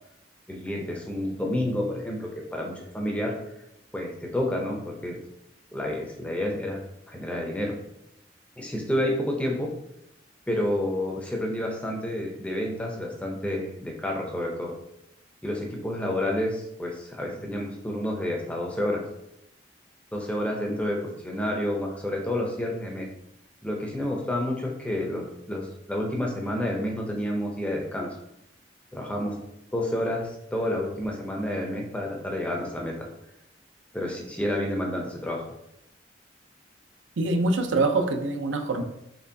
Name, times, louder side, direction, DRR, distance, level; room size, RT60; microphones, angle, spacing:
voice 1, 0.5-3.3 3.9-5.2 5.7-6.8 7.1-7.7 8.6-9.7 10.5-14.7 15.4-19.0 20.1-23.1 23.6-28.2 28.9-29.4 29.7-33.1 33.9-35.4, left 1 dB, 5° left, 0 dB, 0.5 m, -29 dB
voice 2, 37.2-38.8, right 2 dB, 85° right, 5 dB, 0.5 m, -24 dB
4.3 x 3.1 x 2.6 m, 0.81 s
head